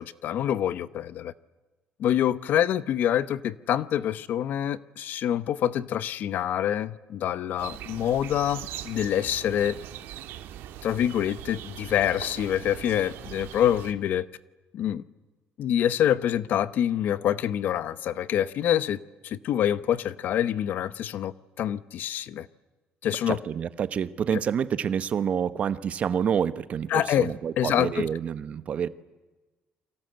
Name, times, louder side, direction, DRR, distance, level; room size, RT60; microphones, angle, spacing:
voice 1, 0.0-1.3 2.0-9.8 10.8-14.3 14.7-15.0 15.6-22.5 23.0-23.4 26.9-28.1, left 10 dB, 55° left, 0.9 m, -26 dB
sound 1, 7.6-13.9, right 12 dB, 85° right, 2.0 m, -41 dB
voice 2, 23.3-28.9, right 8 dB, 35° right, 1.0 m, -28 dB
30.0 x 23.5 x 7.9 m
cardioid pair, 175°, 4 cm